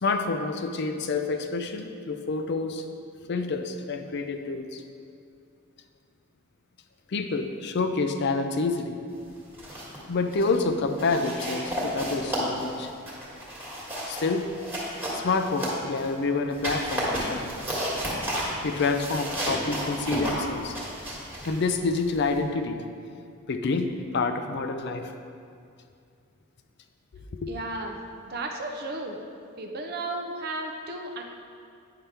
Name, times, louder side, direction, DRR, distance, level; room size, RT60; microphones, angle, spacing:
voice 1, 0.0-2.8 3.3-4.8 7.1-9.0 10.1-12.9 14.1-14.5 15.1-17.5 18.6-20.8 21.5-22.8 23.5-25.1 27.4-27.5, left 3 dB, 50° left, 7 dB, 0.4 m, -28 dB
sound 1, 9.4-10.0 10.3-10.6 11.0-16.1 16.5-22.4, equal, 10° right, 1.5 m, -32 dB
voice 2, 27.5-29.2 29.6-31.2, right 2 dB, 45° right, 3 dB, 0.5 m, -34 dB
9.1 x 5.7 x 3.4 m, 2.4 s
head